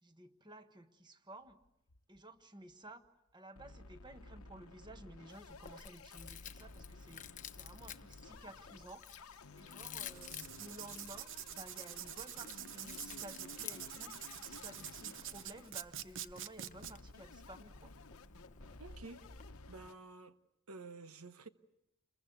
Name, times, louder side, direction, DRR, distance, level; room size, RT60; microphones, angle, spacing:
voice 1, 0.0-1.6 2.1-3.0 3.3-9.1 9.6-17.9, right 1 dB, 20° right, 1.5 m, -54 dB
sound 1, 1.5-2.4 2.7-2.8 3.0-3.1 3.6-19.9, left 3 dB, 80° left, 1.0 m, -55 dB
Chewing mastication, 5.5-19.6, left 8 dB, 35° left, 1.0 m, -53 dB
Writing, 10.2-16.9, right 11 dB, 60° right, 0.9 m, -46 dB
voice 2, 18.8-20.4 20.7-21.5, right 3 dB, 80° right, 1.0 m, -51 dB
29.0 x 22.5 x 8.2 m
head